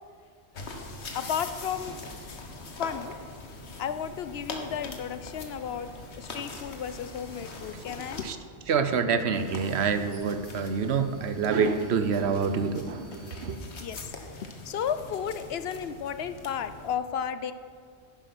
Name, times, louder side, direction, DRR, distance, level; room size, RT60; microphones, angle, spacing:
sound 1, 0.5-8.3 9.3-16.9, left 3 dB, 85° left, 1.6 m, -43 dB
voice 1, 1.1-2.0 2.8-3.1 3.8-5.9 6.2-8.3 13.8-14.1 14.4-17.5, left 8 dB, 70° left, 12 dB, 0.9 m, -33 dB
voice 2, 8.7-13.6, right 5 dB, 80° right, 10 dB, 1.1 m, -27 dB
10.5 x 10.5 x 5.9 m, 2.2 s
omnidirectional pair, 1.1 m